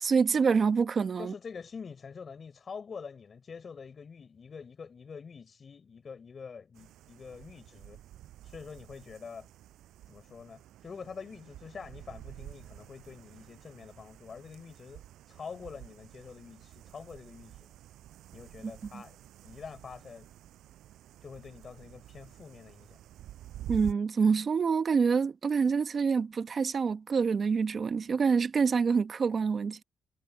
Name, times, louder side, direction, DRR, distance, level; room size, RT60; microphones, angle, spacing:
voice 1, 0.0-1.3 23.7-29.8, right 5 dB, 45° right, 1.3 m, -26 dB
voice 2, 1.2-8.0 8.4-9.5 10.1-15.0 15.3-17.7 18.3-19.2 19.4-20.3 21.2-23.0, left 5 dB, 40° left, 4.4 m, -46 dB
sound 1, 6.7-23.9, right 13 dB, 85° right, 6.6 m, -49 dB
cardioid pair, 90°, 0 cm